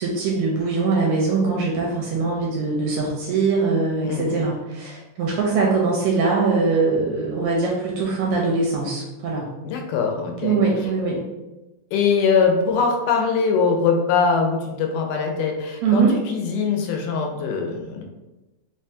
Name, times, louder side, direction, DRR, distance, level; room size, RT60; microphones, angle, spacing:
voice 1, 0.0-9.5 10.4-11.2 15.8-16.1, right 4 dB, 80° right, -3 dB, 1.7 m, -22 dB
voice 2, 4.0-4.4 9.6-10.6 11.9-18.0, left 5 dB, 90° left, 3 dB, 2.1 m, -22 dB
5.0 x 2.1 x 2.6 m, 1.1 s
omnidirectional pair, 3.5 m